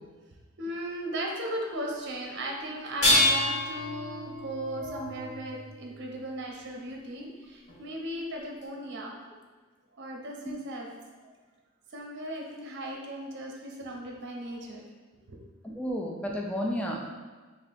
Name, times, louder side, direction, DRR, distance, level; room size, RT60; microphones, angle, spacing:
voice 1, 0.6-9.2 9.9-10.9 11.9-14.8 15.3-15.4, right 1 dB, 55° right, 0 dB, 0.7 m, -37 dB
sound 1, 2.9-6.1 7.7-7.8 8.6-8.7, left 1 dB, 35° left, 1.4 m, -28 dB
voice 2, 15.6-17.2, equal, 5° left, -1 dB, 0.4 m, -32 dB
3.1 x 2.8 x 4.1 m, 1.3 s
head